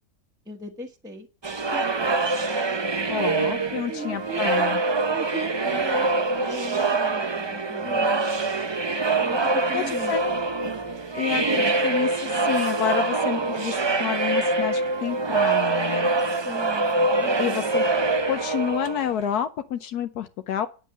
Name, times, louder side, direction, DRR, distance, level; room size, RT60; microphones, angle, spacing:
voice 1, 0.4-1.3 1.7-2.0 3.9-4.8 5.1-8.3 9.2-10.2 16.4-16.9 17.2-17.8, equal, 5° right, 1 dB, 1.3 m, -38 dB
sound 1, 1.4-19.3, right 3 dB, 30° right, 0.4 m, -24 dB
voice 2, 3.1-4.8 9.7-10.3 11.1-16.1 17.4-17.8 18.3-20.7, left 10 dB, 80° left, 10 dB, 1.3 m, -29 dB
11.0 x 5.5 x 8.3 m, 0.34 s
omnidirectional pair, 1.7 m